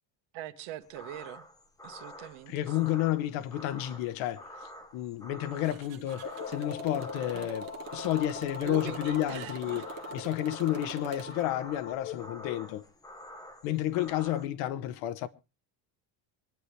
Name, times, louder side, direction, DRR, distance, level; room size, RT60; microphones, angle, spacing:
voice 1, 0.3-1.5 1.8-3.0 7.3-7.5 8.6-9.9, right 13 dB, 75° right, 1.6 m, -42 dB
sound 1, 0.8-14.5, equal, 10° left, 0.8 m, -48 dB
voice 2, 2.5-4.5 4.9-9.8 10.1-12.8 13.6-15.3, left 13 dB, 80° left, 1.2 m, -31 dB
Motorcycle, 5.6-11.4, right 12 dB, 50° right, 1.2 m, -45 dB
sound 2, 6.2-12.8, left 7 dB, 30° left, 1.5 m, -42 dB
26.0 x 9.5 x 3.3 m
cardioid pair, 160°, 47 cm